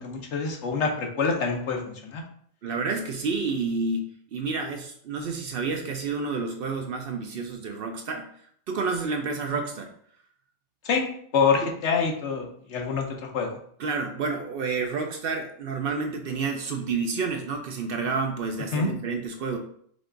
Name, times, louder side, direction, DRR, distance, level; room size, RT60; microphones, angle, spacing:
voice 1, 0.0-2.2 10.9-13.6 18.7-18.9, left 5 dB, 75° left, 2 dB, 1.1 m, -26 dB
voice 2, 2.6-4.0 4.3-8.3 8.7-9.9 11.6-11.7 13.8-19.6, right 4 dB, 60° right, 4 dB, 0.7 m, -29 dB
5.0 x 2.4 x 3.8 m, 0.63 s
omnidirectional pair, 1.2 m